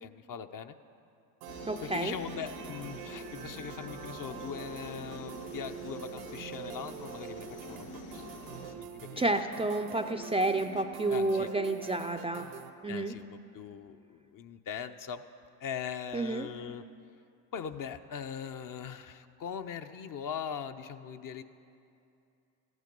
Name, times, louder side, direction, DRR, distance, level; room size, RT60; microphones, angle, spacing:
voice 1, 0.0-0.8 1.8-8.5 8.8-9.2 11.1-11.5 12.9-15.2 15.6-16.8 17.5-21.4, left 8 dB, 45° left, 8 dB, 0.7 m, -41 dB
sound 1, 1.4-12.7, right 8 dB, 75° right, 0.9 m, -45 dB
sound 2, 1.5-8.7, left 2 dB, 75° left, 1.6 m, -47 dB
voice 2, 1.7-2.1 9.2-12.4 12.8-13.1 16.1-16.5, right 2 dB, 15° right, 7 dB, 0.4 m, -30 dB
14.5 x 9.7 x 5.3 m, 2.6 s
hypercardioid pair, 65°, 47 cm